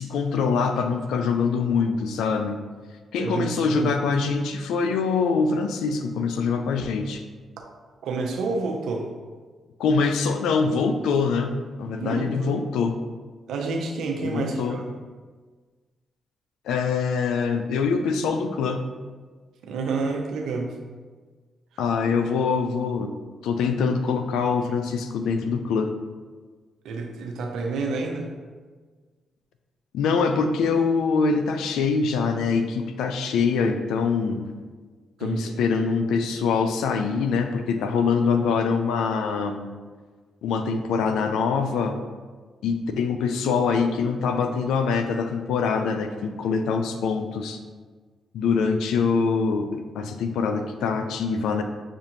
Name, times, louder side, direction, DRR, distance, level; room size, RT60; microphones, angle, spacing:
voice 1, 0.0-2.6 3.1-7.2 9.8-12.9 14.2-14.8 16.7-18.8 21.8-23.1 23.4-25.9 29.9-34.4 35.2-39.7 40.4-42.0 42.6-47.6 48.3-51.6, left 5 dB, 85° left, 7 dB, 0.4 m, -24 dB
voice 2, 3.1-3.9 8.0-9.1 12.0-12.6 13.5-14.8 19.6-20.8 21.7-21.8 22.5-22.6 26.8-28.3 35.2-35.5, right 3 dB, 85° right, 1 dB, 0.6 m, -29 dB
6.5 x 2.5 x 2.9 m, 1.4 s
cardioid pair, 65°, 0 cm